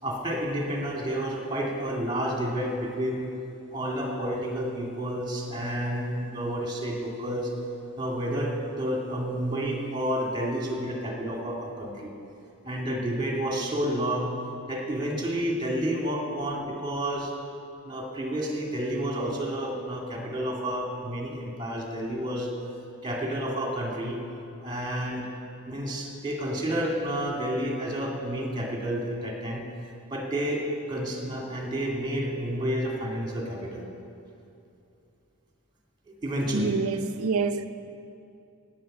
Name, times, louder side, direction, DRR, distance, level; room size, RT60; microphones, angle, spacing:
voice 1, 0.0-3.3 3.7-7.5 8.0-12.1 12.6-14.3 14.7-17.3 17.8-22.5 23.0-24.2 24.6-25.3 25.7-29.6 30.1-33.9 36.1-36.7, equal, 20° right, 2.4 m, -30 dB
voice 2, 36.5-37.7, right 4 dB, 75° right, 0.7 m, -27 dB
16.5 x 9.6 x 6.8 m
head